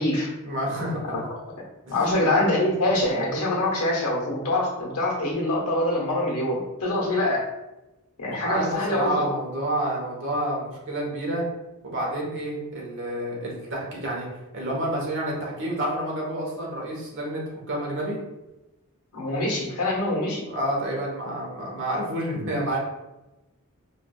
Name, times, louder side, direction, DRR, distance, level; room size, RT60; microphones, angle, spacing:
voice 1, 0.4-1.1 1.8-2.0 8.4-11.4 11.8-14.3 14.5-18.2 20.5-22.8, right 1 dB, 60° right, -2 dB, 1.0 m, -29 dB
voice 2, 1.9-7.4 8.2-9.3 19.1-20.5, left 1 dB, 85° left, -3 dB, 1.1 m, -24 dB
4.5 x 2.5 x 2.3 m, 1.0 s
head